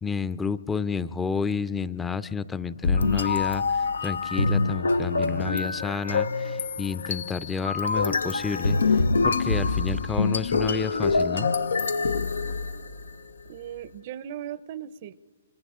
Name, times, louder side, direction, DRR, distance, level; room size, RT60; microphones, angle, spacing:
voice 1, 0.0-8.8 9.2-11.5, left 5 dB, 10° left, 15 dB, 0.5 m, -30 dB
sound 1, 2.8-13.1, left 4 dB, 85° left, 0.6 m, -25 dB
voice 2, 13.4-15.2, right 10 dB, 50° right, 18 dB, 0.6 m, -38 dB
29.0 x 27.0 x 3.7 m, 1.4 s
hypercardioid pair, 130°, 0 cm